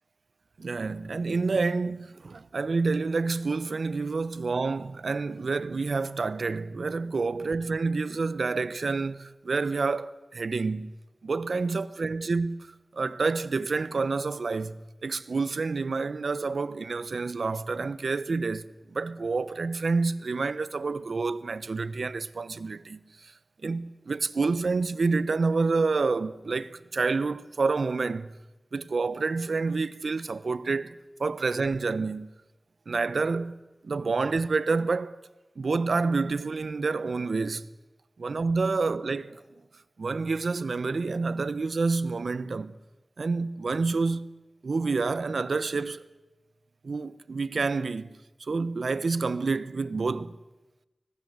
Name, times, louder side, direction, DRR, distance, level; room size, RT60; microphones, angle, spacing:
voice 1, 0.6-10.9 11.2-23.3 23.6-28.3 28.7-32.3 32.9-33.6 33.8-35.2 35.6-37.7 38.2-39.2 40.0-42.7 43.2-44.3 44.6-46.0 46.8-48.1 48.4-50.4, right 4 dB, 85° right, 0.9 m, -28 dB
25.0 x 19.5 x 8.0 m
wide cardioid pair, 55°, 0 cm